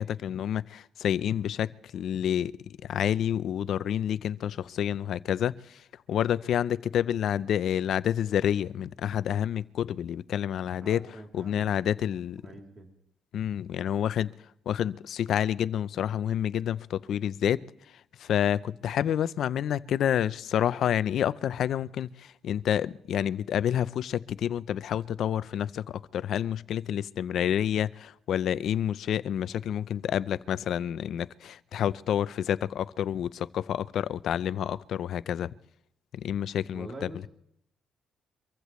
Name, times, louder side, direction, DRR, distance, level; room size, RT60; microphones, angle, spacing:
voice 1, 0.0-5.8 6.1-11.0 11.3-12.4 13.3-14.3 14.7-17.6 18.2-35.5 36.2-36.9, left 10 dB, 70° left, 0.5 m, -29 dB
voice 2, 10.8-12.9 36.7-37.3, right 2 dB, 35° right, 3.1 m, -45 dB
24.5 x 15.0 x 3.1 m
cardioid pair, 90°, 0 cm